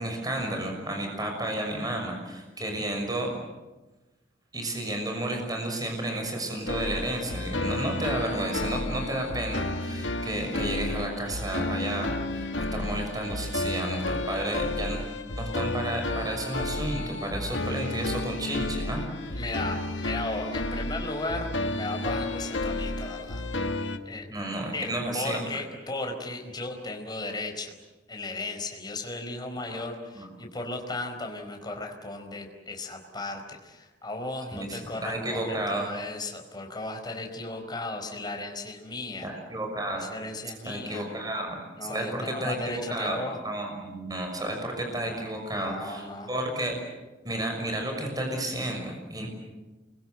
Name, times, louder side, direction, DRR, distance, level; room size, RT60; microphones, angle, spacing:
voice 1, 0.0-3.3 4.5-15.0 15.4-19.4 24.3-25.4 29.7-29.8 30.1-30.3 34.5-35.9 39.2-40.0 40.6-41.6 41.9-43.2 43.4-46.8 47.2-49.3, right 1 dB, 20° right, 2 dB, 6.4 m, -32 dB
sound 1, 6.7-24.0, left 2 dB, 85° left, 1.6 m, -32 dB
voice 2, 19.3-23.4 24.0-24.2 24.7-27.7 28.1-39.3 39.9-41.1 41.8-43.4 45.5-46.3, left 2 dB, 25° left, 3 dB, 4.8 m, -35 dB
29.0 x 23.0 x 8.0 m, 1.1 s
head